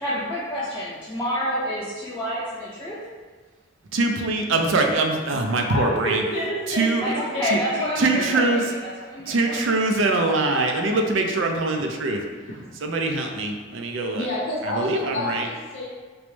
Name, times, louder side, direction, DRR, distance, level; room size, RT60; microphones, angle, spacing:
voice 1, 0.0-3.0 7.0-9.6, equal, 10° left, -11 dB, 0.5 m, -28 dB
voice 2, 3.9-6.2 6.7-7.1 7.4-7.6 8.0-8.6 9.3-12.2 12.8-14.3 14.6-15.5, right 2 dB, 70° right, 3 dB, 0.4 m, -23 dB
voice 3, 5.7-8.5 12.6-12.7 14.1-15.9, equal, 55° left, -8 dB, 0.7 m, -29 dB
4.5 x 2.0 x 3.1 m, 1.4 s
head